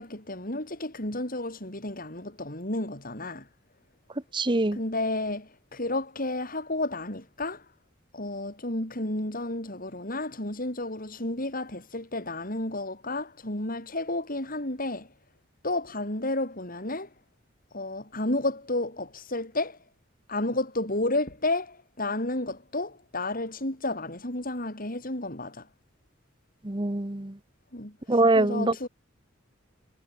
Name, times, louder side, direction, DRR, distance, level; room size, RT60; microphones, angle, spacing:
voice 1, 0.0-3.5 4.7-7.6 8.1-15.1 15.6-17.1 17.7-19.8 20.3-25.7 27.7-28.9, left 2 dB, 45° left, 6.5 m, -31 dB
voice 2, 4.3-4.8 26.6-27.4 28.1-28.9, right 2 dB, 25° right, 1.1 m, -24 dB
head